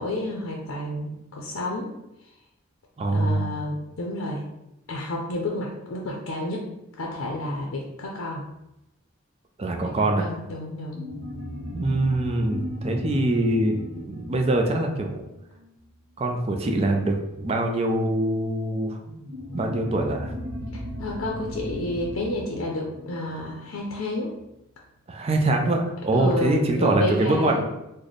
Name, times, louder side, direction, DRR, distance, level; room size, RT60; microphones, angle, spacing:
voice 1, 0.0-1.9 3.1-4.4 4.9-6.7 7.0-8.4 9.8-11.0 20.7-24.4 26.1-27.6, left 1 dB, 75° left, -1 dB, 0.5 m, -30 dB
voice 2, 3.0-3.6 9.6-10.2 11.7-15.1 16.2-19.2 19.5-20.3 25.1-27.6, right 2 dB, 30° right, 3 dB, 0.4 m, -24 dB
sound 1, 10.9-15.9 19.2-24.1, left 1 dB, 70° right, 0.7 m, -36 dB
3.2 x 2.1 x 3.9 m, 0.90 s
head